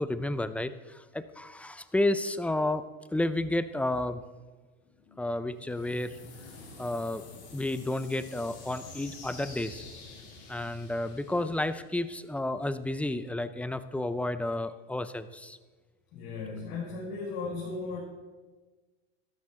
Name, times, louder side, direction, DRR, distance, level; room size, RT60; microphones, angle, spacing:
voice 1, 0.0-2.8 3.1-4.2 5.2-6.2 6.8-7.2 7.5-9.8 10.5-15.6, left 1 dB, 5° left, 12 dB, 0.4 m, -31 dB
sound 1, 5.5-12.4, left 3 dB, 35° left, 3.9 m, -48 dB
voice 2, 16.1-18.0, left 4 dB, 60° left, -7 dB, 4.8 m, -37 dB
13.0 x 13.0 x 3.6 m, 1.3 s
supercardioid pair, 120°, 31 cm